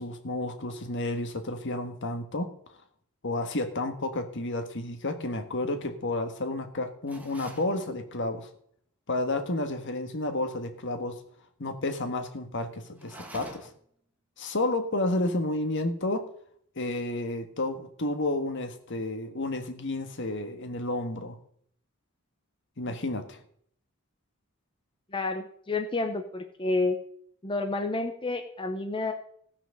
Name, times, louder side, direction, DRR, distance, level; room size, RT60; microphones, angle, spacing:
voice 1, 0.0-2.5 3.2-8.5 9.1-11.2 11.6-13.7 14.4-16.3 16.7-21.4 22.8-23.4, left 2 dB, 60° left, 7 dB, 1.5 m, -31 dB
sound 1, 7.1-7.7 13.0-13.9, equal, 5° right, 1.5 m, -45 dB
voice 2, 25.1-27.0 27.4-29.1, left 3 dB, 25° left, 5 dB, 0.8 m, -29 dB
16.0 x 6.0 x 6.5 m, 0.64 s
head